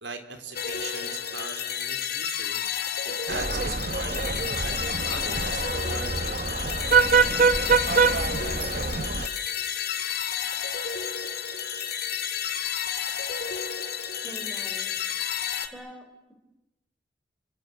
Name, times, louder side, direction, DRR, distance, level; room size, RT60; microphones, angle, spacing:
voice 1, 0.0-2.6 3.0-6.5, right 3 dB, 85° right, 6 dB, 3.6 m, -40 dB
sound 1, 0.5-15.7, left 8 dB, 55° left, 2.3 m, -31 dB
sound 2, 3.3-9.3, right 5 dB, 45° right, 1.0 m, -25 dB
voice 2, 14.2-14.9 15.7-16.3, equal, 5° right, 5 dB, 4.5 m, -44 dB
29.5 x 24.5 x 8.1 m, 0.99 s
head